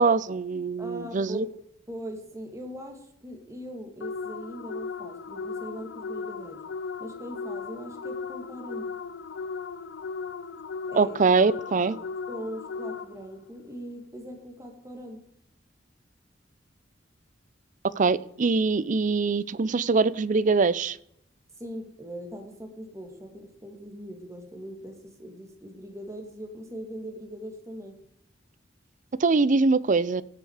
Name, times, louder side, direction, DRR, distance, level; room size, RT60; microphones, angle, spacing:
voice 1, 0.0-1.5 10.9-12.0 18.0-21.0 29.2-30.2, right 4 dB, 45° right, 19 dB, 0.5 m, -23 dB
voice 2, 0.8-1.5 1.9-6.6 7.0-8.9 10.9-11.2 11.9-12.0 12.3-15.2 21.6-28.0, equal, 15° right, 3 dB, 2.5 m, -40 dB
sound 1, 4.0-13.4, left 5 dB, 80° left, 0.5 m, -36 dB
16.0 x 7.9 x 4.9 m, 0.74 s
head